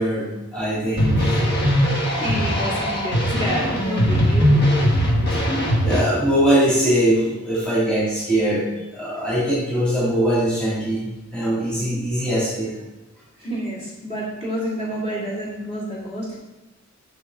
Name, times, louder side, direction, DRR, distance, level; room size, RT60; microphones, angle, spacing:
voice 1, 0.0-1.4 5.8-12.8, right 1 dB, 5° left, -8 dB, 2.0 m, -22 dB
sound 1, 1.0-6.0, equal, 50° left, 1.2 m, -20 dB
voice 2, 2.2-4.7 13.4-16.4, equal, 30° left, -7 dB, 2.1 m, -29 dB
7.2 x 6.2 x 3.5 m, 1.0 s
head